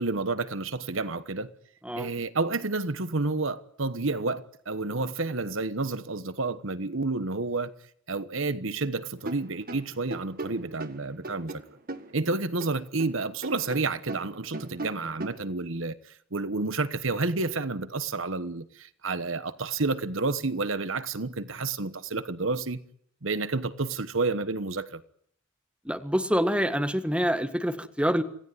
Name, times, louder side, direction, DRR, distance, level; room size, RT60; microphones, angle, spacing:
voice 1, 0.0-1.5 2.0-7.7 8.1-11.6 12.1-22.8 23.2-25.0, right 3 dB, 70° right, 1.2 m, -30 dB
sound 1, 9.2-13.1 13.4-15.5, right 2 dB, 45° right, 1.8 m, -39 dB
voice 2, 25.8-28.2, equal, 5° right, 1.7 m, -26 dB
27.0 x 17.0 x 9.5 m
head